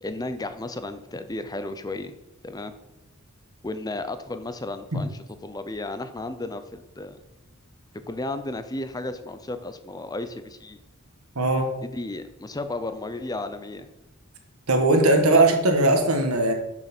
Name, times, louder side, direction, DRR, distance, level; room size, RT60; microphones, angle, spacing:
voice 1, 0.0-2.1 2.4-2.7 3.6-5.1 5.4-7.2 8.1-10.8 11.8-13.9 15.3-15.4, left 2 dB, 20° left, 11 dB, 0.6 m, -33 dB
voice 2, 11.3-11.7 14.7-16.5, right 2 dB, 85° right, 5 dB, 1.4 m, -19 dB
6.7 x 6.2 x 6.0 m, 0.93 s
head